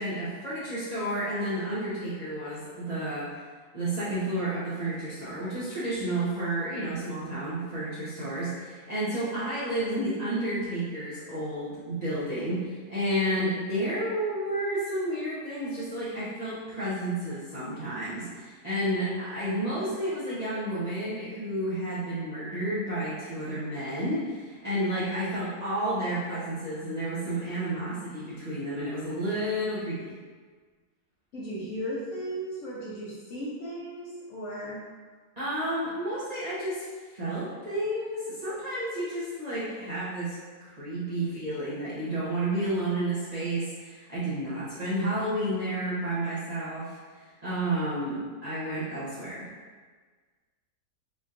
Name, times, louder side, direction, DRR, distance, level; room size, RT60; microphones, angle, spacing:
voice 1, 0.0-3.3 3.7-30.1 35.4-49.5, right 1 dB, 35° right, -12 dB, 0.7 m, -31 dB
voice 2, 31.3-34.8, equal, 60° left, -7 dB, 0.9 m, -36 dB
4.3 x 2.8 x 2.5 m, 1.5 s
omnidirectional pair, 1.7 m